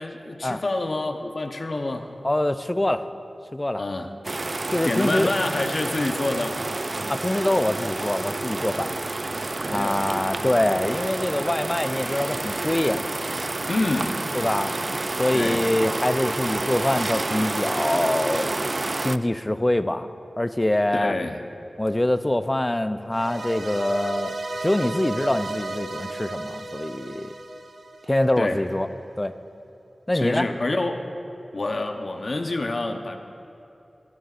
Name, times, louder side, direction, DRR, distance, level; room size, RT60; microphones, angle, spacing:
voice 1, 0.0-2.1 3.8-4.1 4.8-6.6 9.7-10.4 13.7-14.2 15.3-15.6 20.9-21.5 28.4-28.6 30.1-31.1 31.5-33.2, left 2 dB, 60° left, 4 dB, 0.9 m, -27 dB
voice 2, 2.2-3.0 3.5-3.8 4.7-5.3 7.1-9.0 9.7-13.0 14.3-18.6 19.0-20.1 20.4-21.1 21.8-24.4 24.6-27.3 28.1-28.9 29.2-29.3 30.1-30.5, left 1 dB, 25° left, 10 dB, 0.5 m, -24 dB
sound 1, 4.2-19.2, right 2 dB, 50° right, 0.3 m, -29 dB
sound 2, 23.1-28.4, right 2 dB, 85° right, 0.9 m, -34 dB
24.0 x 12.5 x 2.5 m, 2.8 s
wide cardioid pair, 55°, 0 cm